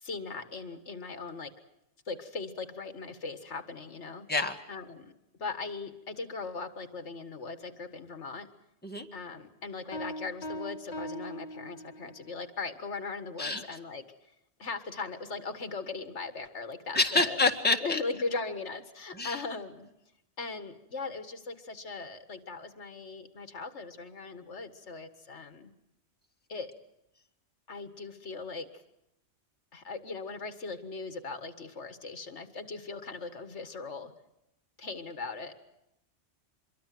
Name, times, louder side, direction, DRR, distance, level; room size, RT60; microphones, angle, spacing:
voice 1, 0.0-1.5 2.1-4.3 4.7-5.1 5.4-8.5 9.1-14.0 14.6-17.4 17.8-19.9 20.4-25.7 26.5-26.7 27.7-28.7 29.7-34.1 34.8-35.5, left 4 dB, 75° left, 9 dB, 1.9 m, -39 dB
sound 1, 9.9-12.3, equal, 35° left, 1.7 m, -40 dB
voice 2, 16.9-18.0 19.1-19.4, left 2 dB, 10° left, 3 dB, 1.8 m, -27 dB
25.5 x 23.0 x 7.7 m, 0.85 s
omnidirectional pair, 1.2 m